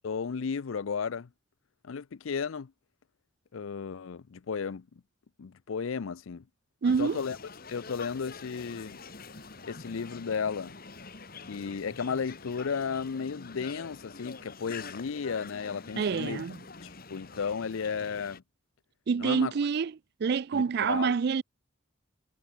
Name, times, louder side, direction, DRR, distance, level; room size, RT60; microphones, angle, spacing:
voice 1, 0.0-1.3 1.8-2.7 3.5-4.9 5.4-6.4 7.0-7.4 7.7-9.0 9.6-10.7 11.5-16.4 16.8-18.4 19.2-19.5 20.5-21.2, left 6 dB, 85° left, 0.5 m, -34 dB
sound 1, 6.8-18.4, left 4 dB, 50° left, 2.3 m, -46 dB
voice 2, 6.8-7.2 16.0-16.6 19.1-19.9 20.2-21.4, right 5 dB, 55° right, 0.4 m, -27 dB
head